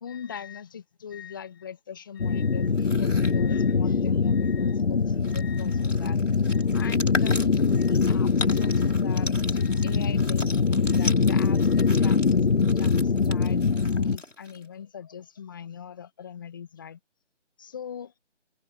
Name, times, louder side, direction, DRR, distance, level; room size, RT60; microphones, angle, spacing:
voice 1, 0.0-6.2 6.5-17.0 17.6-18.2, left 8 dB, 15° left, 1.9 m, -41 dB
sound 1, 2.2-14.2, left 5 dB, 55° left, 0.7 m, -23 dB
sound 2, 2.7-3.4 4.8-4.9 5.1-14.7, left 2 dB, 80° left, 6.7 m, -38 dB
figure-of-eight pair, 160°, 36 cm